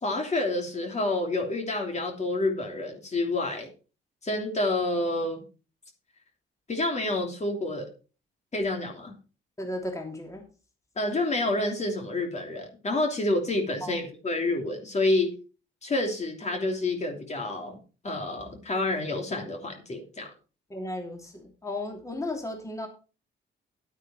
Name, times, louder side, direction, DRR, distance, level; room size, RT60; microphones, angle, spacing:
voice 1, 0.0-3.7 4.2-5.4 6.7-7.9 8.5-9.1 11.0-15.3 15.8-17.8 18.0-20.3, left 2 dB, 35° left, 2 dB, 3.0 m, -28 dB
voice 2, 9.6-10.4 13.8-14.0 20.7-22.9, left 1 dB, 15° left, 2 dB, 3.0 m, -35 dB
10.5 x 8.9 x 4.4 m, 0.35 s
cardioid pair, 90°, 20 cm